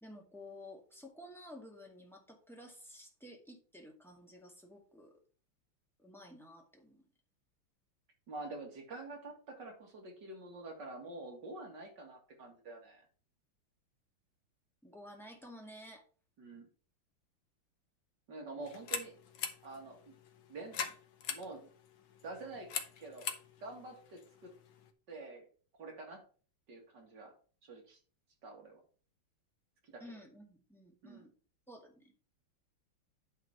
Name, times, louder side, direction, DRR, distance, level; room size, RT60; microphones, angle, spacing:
voice 1, 0.0-5.1 6.0-7.0 14.8-16.0 30.0-31.3 31.7-32.1, left 1 dB, ahead, 0 dB, 1.9 m, -53 dB
voice 2, 8.3-13.1 16.4-16.7 18.3-19.1 19.6-20.1 20.5-20.9 21.3-21.7 22.2-22.7 23.0-24.5 25.1-25.5 25.8-26.2 26.7-27.3 27.6-28.0 28.4-28.8 29.8-30.0 31.0-31.3, right 2 dB, 55° right, 1 dB, 2.7 m, -47 dB
sound 1, 18.6-24.9, left 7 dB, 70° left, 1.7 m, -44 dB
9.5 x 4.0 x 6.0 m, 0.40 s
omnidirectional pair, 2.3 m